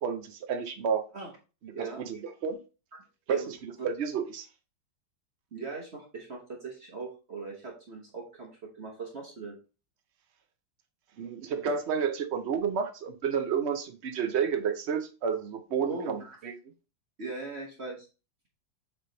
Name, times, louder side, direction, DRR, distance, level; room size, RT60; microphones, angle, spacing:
voice 1, 0.0-1.1 1.8-2.6 3.3-3.6 3.8-4.5 11.2-16.5, right 6 dB, 80° right, 0.6 m, -30 dB
voice 2, 1.7-2.0 3.3-3.5 5.5-9.6 15.8-16.4 17.2-18.1, right 3 dB, 40° right, 1.1 m, -39 dB
7.2 x 3.4 x 3.9 m
omnidirectional pair, 2.0 m